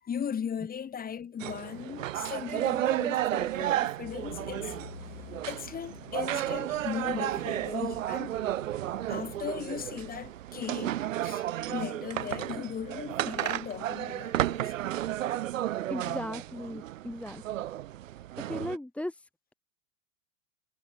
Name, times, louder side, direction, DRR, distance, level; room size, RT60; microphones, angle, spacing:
voice 1, 0.0-4.7 5.5-8.3 9.1-14.7, left 8 dB, 20° left, 5.9 m, -37 dB
sound 1, 1.4-18.8, right 13 dB, 75° right, 3.2 m, -33 dB
sound 2, 4.0-10.3, left 14 dB, 75° left, 2.4 m, -49 dB
voice 2, 15.9-17.7 18.4-19.5, left 1 dB, 5° left, 2.1 m, -38 dB
hypercardioid pair, 120°, 39 cm